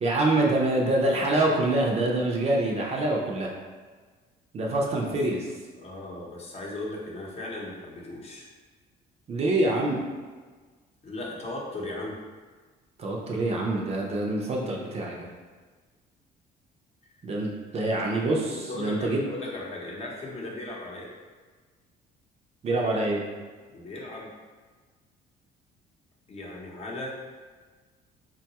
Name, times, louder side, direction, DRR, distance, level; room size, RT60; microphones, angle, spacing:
voice 1, 0.0-3.5 4.5-5.4 9.3-10.0 13.0-15.3 17.2-19.2 22.6-23.2, right 2 dB, 40° right, -1 dB, 0.5 m, -25 dB
voice 2, 4.8-5.1 5.7-8.5 11.0-12.2 17.0-17.1 18.5-21.1 23.7-24.3 26.3-27.1, left 2 dB, 40° left, -3 dB, 0.8 m, -37 dB
3.7 x 2.3 x 2.8 m, 1.4 s
cardioid pair, 110°, 17 cm